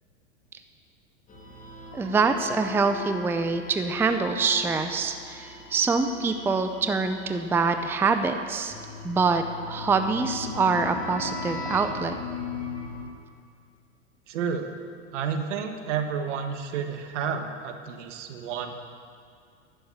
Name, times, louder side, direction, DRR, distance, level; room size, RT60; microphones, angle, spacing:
sound 1, 1.3-13.1, left 3 dB, 20° left, 2.7 m, -38 dB
voice 1, 1.9-8.7 9.0-12.2, right 4 dB, 5° right, 8 dB, 0.5 m, -25 dB
voice 2, 14.3-14.7 15.1-18.8, right 6 dB, 70° right, 6 dB, 1.6 m, -31 dB
12.0 x 7.9 x 8.9 m, 2.2 s
hypercardioid pair, 105°, 38 cm